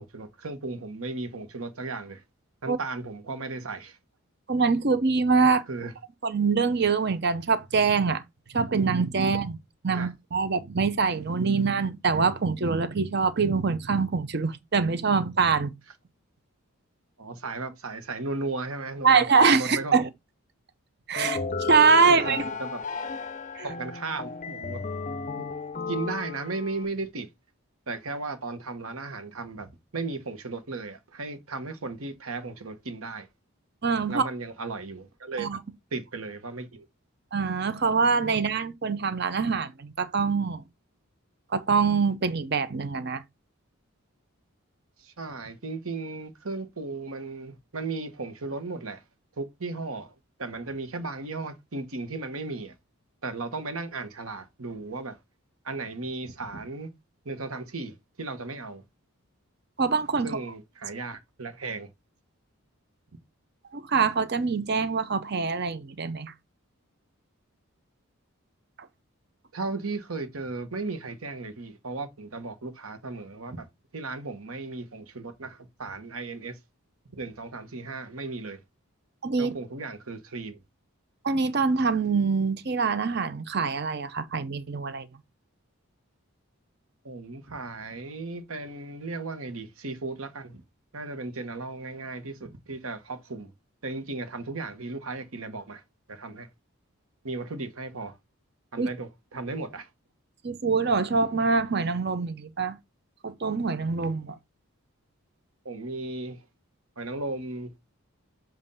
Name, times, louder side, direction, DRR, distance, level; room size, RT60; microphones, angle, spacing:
voice 1, 0.0-2.2 2.6-4.0 5.7-5.9 9.9-10.1 17.2-20.0 22.0-22.8 23.6-24.8 25.4-25.5 25.9-27.3 27.9-33.3 34.1-35.6 35.9-36.9 45.0-49.0 49.4-50.1 50.4-52.7 53.2-55.2 55.6-56.9 57.2-58.8 60.2-61.9 69.5-73.7 73.9-76.6 77.1-78.6 79.4-80.6 87.0-90.6 90.9-93.5 93.8-95.8 96.1-96.5 97.2-98.2 98.7-99.9 105.6-106.4 107.0-107.7, right 3 dB, 75° right, 1.2 m, -35 dB
voice 2, 4.5-5.6 6.2-8.2 8.5-9.6 9.8-15.7 19.0-20.1 21.1-22.4 23.6-23.7 33.8-34.2 35.4-35.6 37.3-40.6 41.5-43.2 59.8-60.4 63.7-66.3 79.2-79.5 81.2-85.1 98.8-98.9 100.4-102.8 103.2-104.4, right 4 dB, 50° right, 0.7 m, -24 dB
sound 1, 21.2-26.9, left 4 dB, 35° left, 0.5 m, -34 dB
7.6 x 2.6 x 5.5 m
head